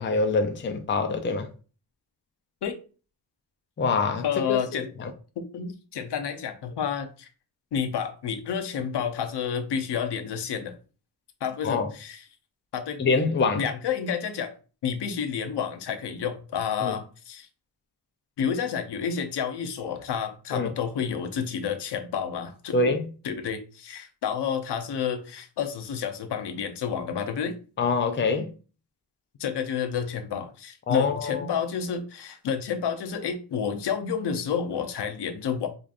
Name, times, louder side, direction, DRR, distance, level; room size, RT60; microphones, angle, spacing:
voice 1, 0.0-1.5 3.8-5.1 11.6-11.9 13.0-13.7 16.8-17.0 20.5-20.7 22.7-23.1 27.8-28.5 30.9-31.5, left 4 dB, 30° left, 0.5 m, -25 dB
voice 2, 4.2-4.9 5.4-7.3 7.7-10.8 11.4-12.2 12.7-13.0 13.5-14.5 14.8-17.5 18.4-22.8 23.2-27.6 29.4-35.7, left 7 dB, 75° left, 0.7 m, -30 dB
5.0 x 2.4 x 2.5 m
wide cardioid pair, 125°, 41 cm